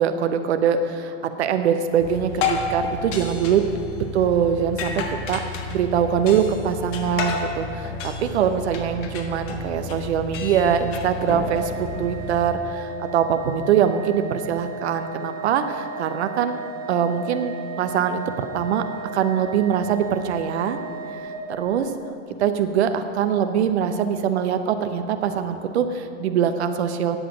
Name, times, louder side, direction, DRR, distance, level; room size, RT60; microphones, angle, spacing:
voice 1, 0.0-3.7 4.0-5.4 5.7-16.6 16.9-18.8 19.1-20.8 21.5-21.9 22.4-27.2, right 8 dB, 60° right, 8 dB, 1.1 m, -23 dB
sound 1, 2.0-12.5, left 3 dB, 35° left, 1.5 m, -31 dB
Organ, 11.5-22.1, right 3 dB, 85° right, 1.1 m, -36 dB
18.0 x 7.9 x 5.1 m, 2.9 s
figure-of-eight pair, 95°, 37 cm